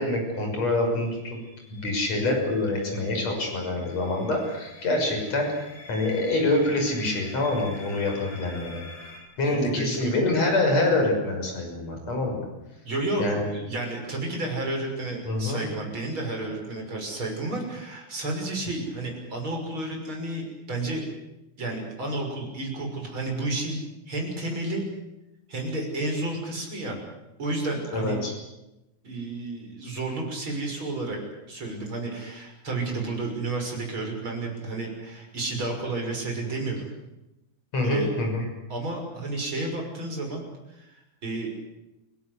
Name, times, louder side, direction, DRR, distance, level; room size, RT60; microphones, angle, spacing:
voice 1, 0.0-1.4 1.7-5.5 5.9-8.8 9.4-12.4 13.2-13.5 15.3-15.6 27.9-28.3 37.7-38.4, left 2 dB, 50° left, 2 dB, 7.4 m, -25 dB
sound 1, 1.1-9.2, left 2 dB, 75° left, 6.8 m, -46 dB
voice 2, 9.5-10.1 12.9-21.0 21.6-23.8 24.1-24.8 25.5-27.0 27.4-28.2 29.0-31.2 31.5-36.9 37.8-38.1 38.7-40.4 40.7-41.5, right 2 dB, 35° right, 1 dB, 7.0 m, -31 dB
29.5 x 17.5 x 8.3 m, 0.94 s
omnidirectional pair, 3.8 m